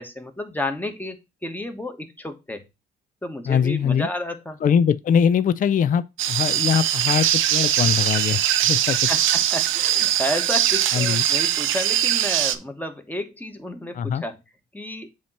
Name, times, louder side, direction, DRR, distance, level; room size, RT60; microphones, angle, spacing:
voice 1, 0.0-2.6 3.2-4.6 8.9-14.4 14.7-15.1, left 1 dB, 10° left, 1.3 m, -31 dB
voice 2, 3.5-4.1 4.6-9.0 10.9-11.2 13.9-14.2, left 7 dB, 40° left, 0.4 m, -22 dB
sound 1, 6.2-12.6, right 12 dB, 90° right, 0.6 m, -21 dB
7.4 x 3.0 x 5.6 m
cardioid pair, 90°, 20 cm